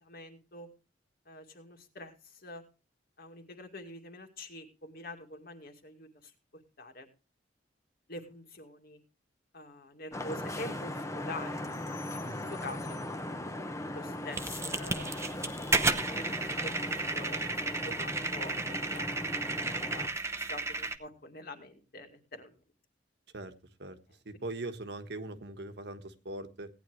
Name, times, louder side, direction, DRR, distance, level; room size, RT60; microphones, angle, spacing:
voice 1, 0.0-0.7 1.3-2.6 3.2-7.1 8.1-9.0 9.5-12.0 12.5-13.0 13.9-15.2 16.0-16.3 16.6-22.6, left 2 dB, 55° left, 5 dB, 2.3 m, -46 dB
Vehicle horn car horn honking / Traffic noise roadway noise, 10.1-20.1, left 1 dB, 15° left, 1.0 m, -39 dB
sound 1, 14.3-21.0, right 3 dB, 15° right, 0.8 m, -33 dB
voice 2, 24.2-26.7, right 2 dB, 65° right, 9 dB, 1.4 m, -41 dB
17.5 x 10.0 x 3.2 m, 0.30 s
head